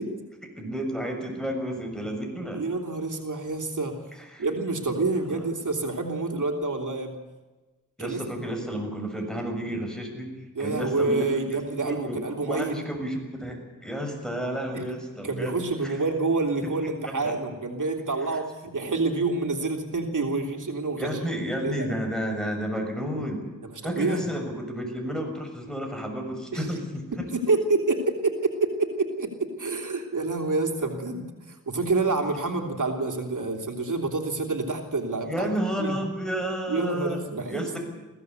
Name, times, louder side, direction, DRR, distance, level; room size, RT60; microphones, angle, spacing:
voice 1, 0.6-2.6 4.1-4.5 5.3-5.4 8.0-10.3 10.6-15.6 15.8-16.0 17.2-17.3 18.3-18.4 21.0-23.4 23.8-27.0 35.2-37.2 37.5-37.8, equal, ahead, 3 dB, 6.7 m, -31 dB
voice 2, 2.5-4.0 4.4-7.2 8.0-8.2 10.5-12.7 14.7-14.8 15.2-21.1 21.6-21.9 23.6-24.2 26.5-26.7 27.1-35.5 35.8-36.0 36.7-37.8, right 3 dB, 80° right, 3 dB, 3.0 m, -28 dB
22.0 x 16.0 x 8.2 m, 1.2 s
wide cardioid pair, 70°, 31 cm